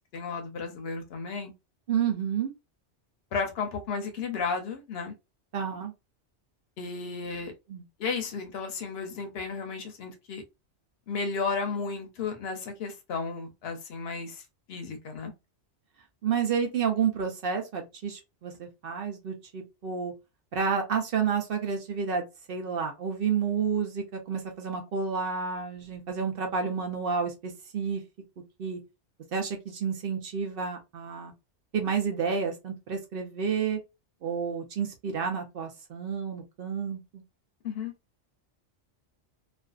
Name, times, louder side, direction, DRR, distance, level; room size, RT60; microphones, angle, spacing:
voice 1, 0.0-1.5 3.3-5.1 6.8-7.5 8.0-10.4 11.1-14.4 14.7-15.3 37.6-37.9, left 4 dB, 65° left, 0.8 m, -33 dB
voice 2, 1.9-2.5 5.5-5.9 7.7-7.8 16.2-20.1 20.5-28.0 28.6-28.8 29.3-31.3 31.7-33.8 34.2-37.2, right 6 dB, 60° right, 0.7 m, -30 dB
2.5 x 2.3 x 2.3 m
omnidirectional pair, 1.2 m